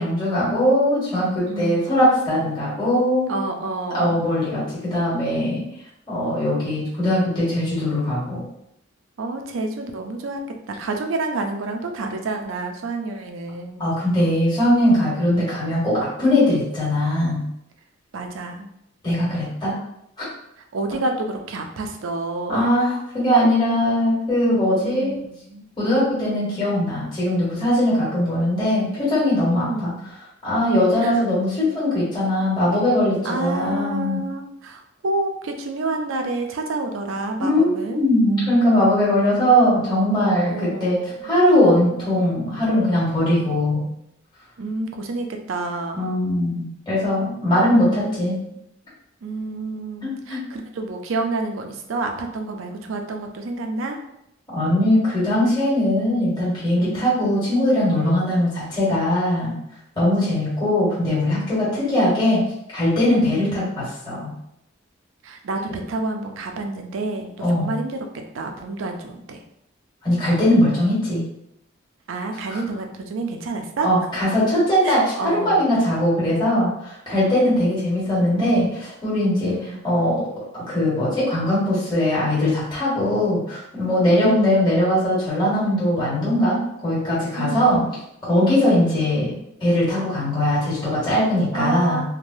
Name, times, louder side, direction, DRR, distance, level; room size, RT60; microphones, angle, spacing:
voice 1, 0.0-3.3 3.9-5.6 6.1-8.4 13.8-17.4 19.0-19.7 22.5-22.9 23.1-25.1 25.8-29.9 30.4-34.2 37.4-43.9 45.9-48.3 50.0-50.4 54.5-59.6 59.9-62.4 62.7-64.3 67.4-67.7 70.0-71.2 72.3-72.6 73.8-79.5 79.8-80.3 80.5-87.8 88.2-89.3 89.6-92.0, left 1 dB, 25° left, -9 dB, 1.2 m, -20 dB
voice 2, 1.5-1.9 3.3-4.2 9.2-10.4 10.7-13.9 15.3-15.8 18.1-18.7 20.7-22.6 24.8-25.6 29.5-30.0 31.0-31.2 33.2-38.0 40.4-41.3 44.6-46.2 48.3-48.6 49.2-54.0 56.8-57.2 60.0-60.4 63.2-63.6 65.2-68.0 68.3-69.4 72.1-73.9 74.8-75.6 77.3-77.6 79.4-79.8 84.2-84.5 87.4-87.8 91.5-92.0, right 2 dB, 85° right, 4 dB, 0.4 m, -29 dB
3.2 x 2.1 x 2.6 m, 0.77 s
head